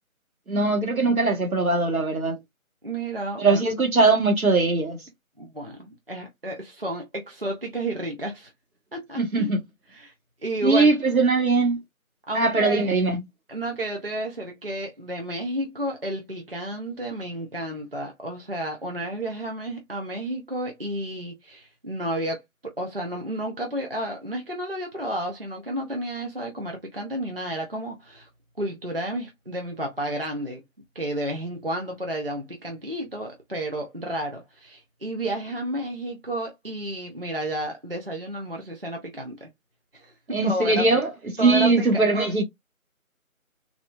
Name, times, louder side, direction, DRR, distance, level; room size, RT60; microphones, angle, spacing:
voice 1, 0.5-2.4 3.4-5.0 9.2-9.6 10.6-11.8 12.3-13.2 40.3-41.1 41.4-42.4, right 3 dB, 75° right, 1.4 m, -21 dB
voice 2, 2.8-3.6 5.4-8.5 8.9-9.5 9.9-10.1 10.4-10.9 12.3-13.0 13.5-28.3 28.6-30.6 30.9-39.5 39.9-41.0 41.4-42.3, right 1 dB, 40° right, 0.6 m, -31 dB
3.6 x 2.2 x 2.3 m
figure-of-eight pair, 175°, 43 cm